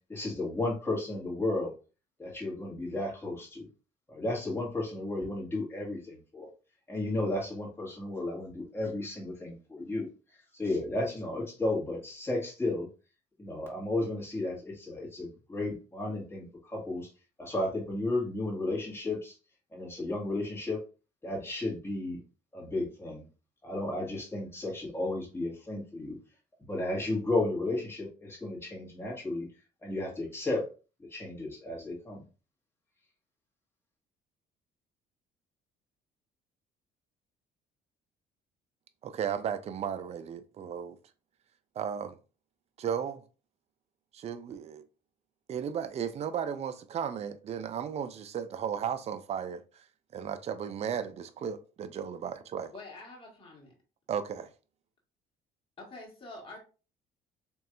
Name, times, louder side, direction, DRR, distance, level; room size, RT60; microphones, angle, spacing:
voice 1, 0.1-1.7 2.2-3.7 4.1-6.5 6.9-12.9 13.4-17.1 17.4-19.4 19.7-20.8 21.2-22.2 22.5-23.2 23.6-26.2 26.7-29.5 29.8-30.7 31.1-32.2, left 2 dB, 15° left, 1.9 m, -33 dB
voice 2, 39.0-41.0 41.8-42.2 42.8-43.2 44.1-44.8 45.5-49.6 50.1-52.7 54.1-54.5, right 8 dB, 40° right, 0.5 m, -35 dB
voice 3, 52.7-53.7 55.8-56.6, left 2 dB, 30° left, 1.9 m, -46 dB
4.5 x 3.1 x 2.5 m
cardioid pair, 110°, 17 cm